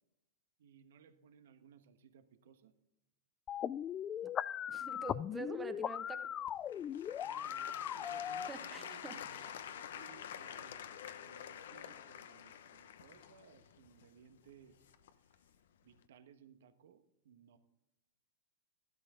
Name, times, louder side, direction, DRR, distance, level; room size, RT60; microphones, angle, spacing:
voice 1, 0.6-2.8 7.2-14.9 15.2-15.5 15.8-17.6, right 7 dB, 75° right, 9 dB, 1.3 m, -61 dB
sound 1, 3.5-8.5, left 9 dB, 25° left, 0.3 m, -39 dB
voice 2, 4.7-6.3 8.5-9.2, right 3 dB, 10° right, 8 dB, 1.3 m, -46 dB
Applause / Crowd, 6.5-15.3 16.0-16.1, left 9 dB, 75° left, 0.9 m, -48 dB
13.5 x 12.0 x 3.8 m, 0.88 s
hypercardioid pair, 130°, 0 cm